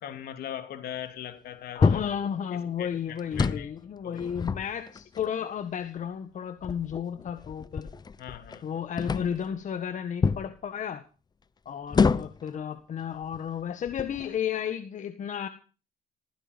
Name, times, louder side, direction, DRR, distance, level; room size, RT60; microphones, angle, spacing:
voice 1, 0.0-2.1 2.5-3.7 4.0-4.4 8.2-8.8, left 10 dB, 65° left, 3.0 m, -40 dB
voice 2, 1.7-7.9 8.6-11.0 11.6-15.5, left 8 dB, 45° left, 1.6 m, -33 dB
sound 1, 1.8-2.2 3.2-3.7 4.2-5.2 6.0-6.1 6.6-8.6 9.0-9.5 10.2-10.5 11.9-12.5 13.2-13.4 13.9-14.4, left 5 dB, 25° left, 0.8 m, -27 dB
16.5 x 15.5 x 5.3 m
cardioid pair, 110°, 17 cm